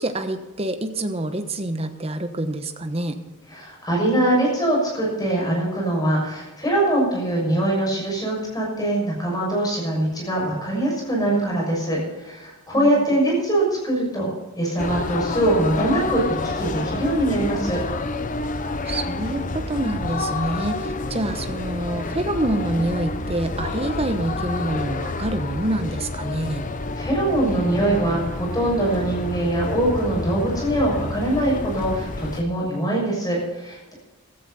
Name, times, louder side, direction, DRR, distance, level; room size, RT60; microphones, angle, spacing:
voice 1, 0.0-3.2 12.7-13.0 18.8-26.6, right 1 dB, 25° right, 7 dB, 1.1 m, -27 dB
voice 2, 3.5-14.3 14.6-17.8 26.9-33.9, right 1 dB, 15° left, -3 dB, 6.3 m, -23 dB
sound 1, 14.8-32.4, left 3 dB, 35° left, 0.7 m, -29 dB
16.0 x 13.5 x 4.2 m, 1.1 s
head